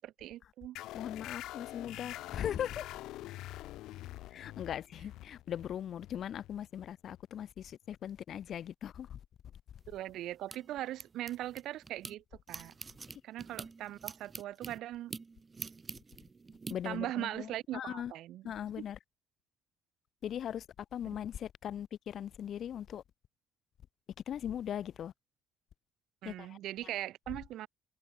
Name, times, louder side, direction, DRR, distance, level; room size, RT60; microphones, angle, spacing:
voice 1, 0.0-0.8 9.9-12.7 13.2-15.1 16.8-18.8 26.2-27.7, right 14 dB, 70° right, 6.0 m, -40 dB
sound 1, 0.8-7.9, left 16 dB, 75° left, 4.8 m, -46 dB
voice 2, 0.9-2.9 4.3-9.2 16.7-18.1 18.4-19.0 20.2-20.6 20.9-23.0 24.3-25.1 26.2-26.6, left 9 dB, 55° left, 1.6 m, -39 dB
sound 2, 9.8-12.2 12.5-16.7, right 4 dB, 25° right, 3.8 m, -46 dB
cardioid pair, 110°, 0 cm